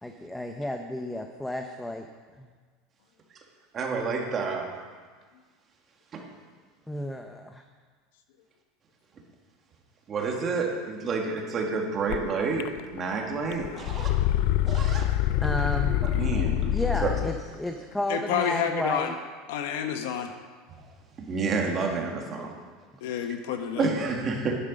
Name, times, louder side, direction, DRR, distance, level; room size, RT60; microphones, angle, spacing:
voice 1, 0.0-2.1 2.4-2.5 6.9-7.6 15.4-16.0 16.7-19.2, left 1 dB, 5° left, 5 dB, 0.6 m, -32 dB
voice 2, 3.7-4.8 6.1-6.2 10.1-14.1 14.6-15.1 16.0-16.8 17.0-17.1 20.8-20.9 21.2-22.6 23.8-24.6, right 4 dB, 25° right, 0 dB, 1.9 m, -29 dB
sound 1, 12.1-12.2 12.6-13.1 13.4-17.4, left 12 dB, 60° left, 0.4 m, -26 dB
voice 3, 18.1-19.1 19.5-20.3 23.0-23.9, left 8 dB, 75° left, 6 dB, 1.3 m, -29 dB
11.5 x 10.0 x 5.2 m, 1.5 s
supercardioid pair, 155°, 0 cm